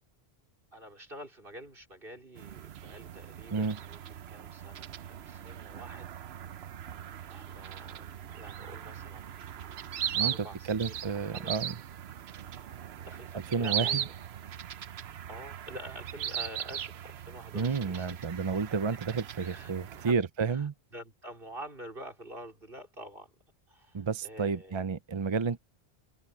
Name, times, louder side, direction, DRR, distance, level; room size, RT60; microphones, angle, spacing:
voice 1, 0.7-4.0 4.3-6.1 7.3-9.9 10.1-11.8 13.0-14.1 15.3-18.5 19.3-20.2 20.4-23.3 23.7-24.8, right 1 dB, 60° right, 4.9 m, -47 dB
sound 1, 2.3-20.1, right 9 dB, 80° right, 1.0 m, -39 dB
voice 2, 10.1-11.7 13.5-14.0 17.5-20.7 23.9-25.6, right 5 dB, 35° right, 0.5 m, -31 dB
omnidirectional pair, 1.1 m